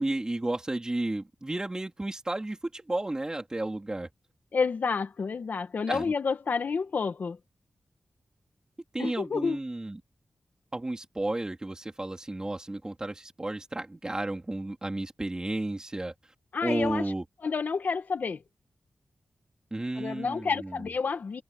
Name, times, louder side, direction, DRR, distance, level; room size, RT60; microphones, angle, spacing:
voice 1, 0.0-4.1 5.9-6.0 8.9-10.0 10.7-16.1 16.6-17.2 19.7-20.8, right 2 dB, 25° right, 3.9 m, -32 dB
voice 2, 4.5-7.4 9.0-9.6 16.5-17.0 17.4-18.4 19.9-21.4, left 5 dB, 70° left, 1.7 m, -29 dB
wide cardioid pair, 75°, 3 cm